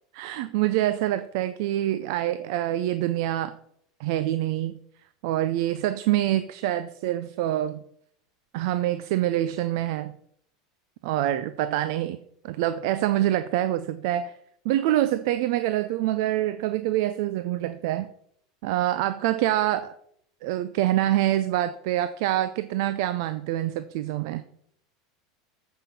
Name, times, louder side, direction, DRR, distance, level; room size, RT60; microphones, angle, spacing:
voice 1, 0.1-3.5 4.0-4.7 5.2-7.8 8.5-10.1 11.0-12.2 12.4-14.3 14.6-18.1 18.6-19.9 20.4-24.4, right 13 dB, 65° right, 12 dB, 0.5 m, -25 dB
8.1 x 5.6 x 6.9 m, 0.69 s
hypercardioid pair, 100°, 2 cm